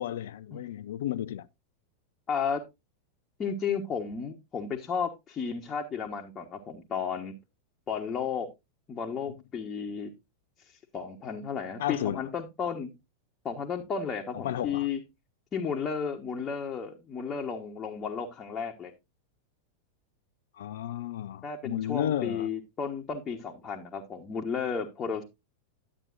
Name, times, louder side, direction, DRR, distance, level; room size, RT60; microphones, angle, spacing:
voice 1, 0.0-1.5 11.8-12.2 14.3-14.9 20.6-22.5, left 11 dB, 60° left, 0.4 m, -33 dB
voice 2, 2.3-2.6 3.4-7.3 7.9-8.5 8.9-10.1 10.6-12.9 13.4-15.0 15.5-18.9 21.4-25.2, left 6 dB, 25° left, 1.2 m, -33 dB
11.0 x 8.5 x 2.5 m
figure-of-eight pair, 90°, 0 cm